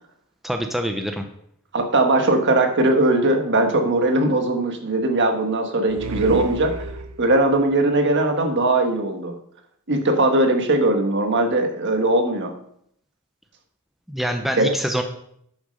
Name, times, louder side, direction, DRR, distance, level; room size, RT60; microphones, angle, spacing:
voice 1, 0.4-1.3 14.1-15.0, equal, ahead, 5 dB, 0.7 m, -25 dB
voice 2, 1.7-6.9 7.2-9.3 9.9-12.5 14.6-14.7, right 2 dB, 55° right, 5 dB, 1.6 m, -20 dB
sound 1, 5.9-7.5, right 3 dB, 80° right, 0.7 m, -28 dB
10.0 x 6.4 x 5.4 m, 0.70 s
head